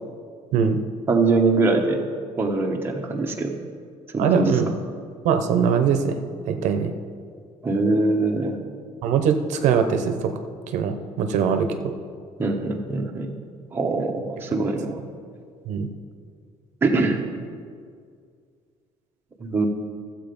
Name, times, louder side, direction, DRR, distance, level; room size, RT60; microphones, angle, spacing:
voice 1, 1.1-2.0 2.4-3.5 4.1-4.5 7.6-8.6 12.4-13.3 13.7-15.0 16.8-17.3 19.4-19.7, right 3 dB, 15° right, 1 dB, 1.0 m, -22 dB
voice 2, 4.2-4.7 5.2-6.9 9.0-10.3 10.7-12.0 15.7-15.9, right 6 dB, 75° right, 7 dB, 0.8 m, -22 dB
13.0 x 7.6 x 5.2 m, 2.1 s
cardioid pair, 155°, 12 cm